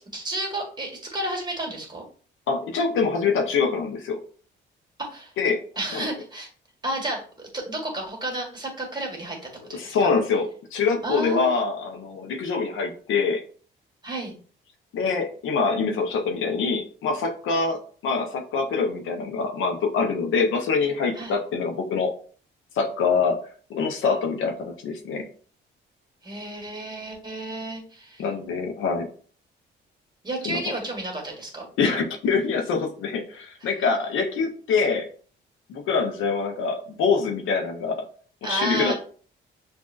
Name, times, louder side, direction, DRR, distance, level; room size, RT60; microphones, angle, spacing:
voice 1, 0.0-2.0 5.0-5.3 5.8-6.5 6.8-10.1 11.0-11.5 14.0-14.4 21.1-21.4 26.2-28.2 30.2-31.7 38.4-38.9, right 2 dB, 20° right, 0 dB, 1.7 m, -32 dB
voice 2, 2.5-4.2 5.4-5.6 5.9-6.1 9.7-13.4 14.9-22.1 22.7-23.4 23.7-25.3 28.2-29.1 30.4-30.6 31.8-35.1 35.7-38.1 38.4-38.9, left 5 dB, 80° left, 4 dB, 0.9 m, -25 dB
6.1 x 2.7 x 2.5 m, 0.43 s
cardioid pair, 90°, 20 cm